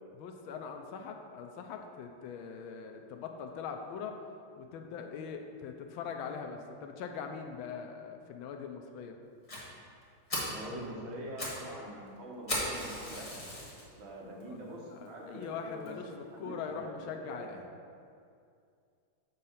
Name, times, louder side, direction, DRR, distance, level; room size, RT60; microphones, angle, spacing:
voice 1, 0.1-4.2 4.6-9.2 14.5-14.6 14.9-17.7, left 6 dB, 75° left, 5 dB, 1.3 m, -42 dB
Fire, 9.5-9.6 10.0-10.1 10.3-10.6 11.1-11.6 11.9-12.0 12.5-13.8 14.4-14.5 15.1-15.2 15.4-15.5 15.9-16.0, left 1 dB, 20° left, 1.3 m, -36 dB
voice 2, 10.4-13.4 13.9-15.9 16.3-17.5, equal, 65° right, -3 dB, 1.9 m, -44 dB
7.4 x 4.0 x 5.6 m, 2.4 s
omnidirectional pair, 2.3 m